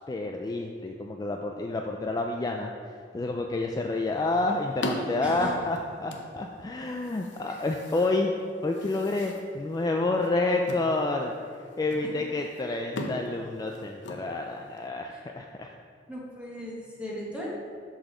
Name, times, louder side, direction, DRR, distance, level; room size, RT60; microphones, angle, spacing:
voice 1, 0.1-2.7 3.1-8.3 8.6-11.4 11.8-15.7, left 2 dB, 20° left, 2 dB, 0.3 m, -29 dB
sound 1, 3.8-14.9, left 1 dB, 85° left, 0.7 m, -41 dB
voice 2, 5.2-5.5 7.5-7.6 15.1-15.2 16.1-17.5, equal, 5° right, -5 dB, 1.1 m, -37 dB
6.4 x 4.1 x 6.0 m, 2.1 s
head